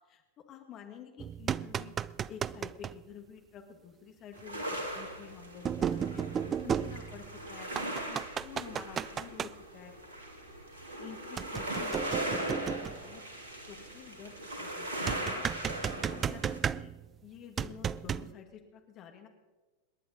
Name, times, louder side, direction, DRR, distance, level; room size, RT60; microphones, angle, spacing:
voice 1, 0.0-1.9 2.3-6.2 6.6-9.9 11.0-13.2 13.7-16.9 17.2-19.3, left 8 dB, 35° left, 4 dB, 2.0 m, -50 dB
sound 1, 1.2-3.0 4.4-4.5 5.6-7.4 7.8-9.5 11.4-13.1 15.1-17.1 17.6-18.3, right 8 dB, 25° right, 0.4 m, -34 dB
sound 2, 4.3-16.6, right 1 dB, 65° right, 2.9 m, -39 dB
27.5 x 11.0 x 4.1 m, 1.3 s
figure-of-eight pair, 90°, 0 cm